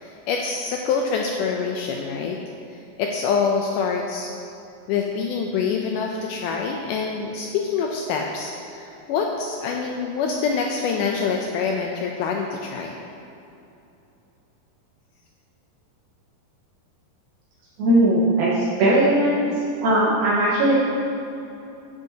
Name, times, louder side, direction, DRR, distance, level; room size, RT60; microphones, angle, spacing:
voice 1, 0.0-2.4 3.0-4.3 4.9-13.0, left 5 dB, 85° left, 1 dB, 1.8 m, -25 dB
voice 2, 17.8-19.5 19.8-20.7, right 1 dB, 80° right, -9 dB, 3.0 m, -19 dB
10.0 x 8.0 x 2.8 m, 2.8 s
omnidirectional pair, 4.2 m